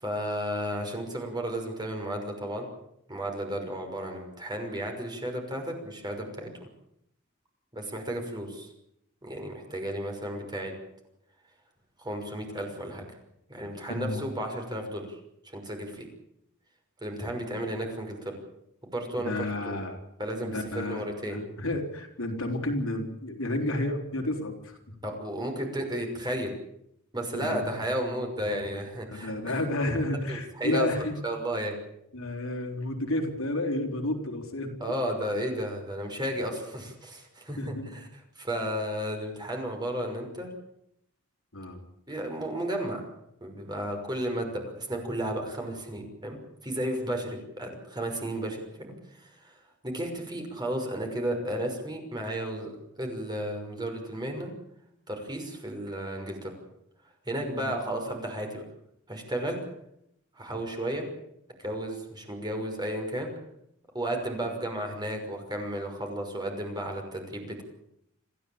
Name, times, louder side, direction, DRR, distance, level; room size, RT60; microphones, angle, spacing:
voice 1, 0.0-2.7 3.1-6.7 7.7-8.7 9.2-10.7 12.0-13.0 13.5-15.2 15.4-16.1 17.0-18.3 18.9-19.3 19.6-19.8 20.2-21.4 25.0-26.5 27.1-29.6 30.3-30.9 31.2-31.7 34.8-40.5 42.1-43.1 43.4-46.4 46.6-49.6 49.8-54.5 55.1-56.5 57.3-58.6 59.1-59.6 60.4-61.0 61.6-63.3 63.9-67.6, right 1 dB, 20° right, 3 dB, 6.0 m, -33 dB
voice 2, 13.9-14.2 17.6-17.7 19.2-20.0 20.4-24.8 27.3-27.6 28.4-28.8 29.1-31.1 32.1-34.7 37.6-38.0 41.5-41.8 57.5-57.7, left 1 dB, 70° left, 3 dB, 4.2 m, -31 dB
26.5 x 15.5 x 8.8 m, 0.78 s
head